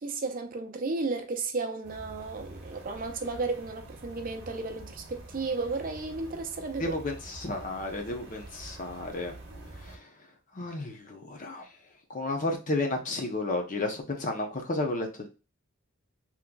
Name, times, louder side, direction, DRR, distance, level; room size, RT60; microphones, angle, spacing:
voice 1, 0.0-7.0, right 3 dB, 40° right, 0.5 m, -33 dB
sound 1, 1.8-10.0, right 1 dB, 60° right, 1.3 m, -46 dB
voice 2, 6.8-9.3 9.9-10.0 10.5-11.6 12.1-15.3, left 2 dB, 40° left, 0.7 m, -32 dB
3.8 x 3.0 x 2.2 m
head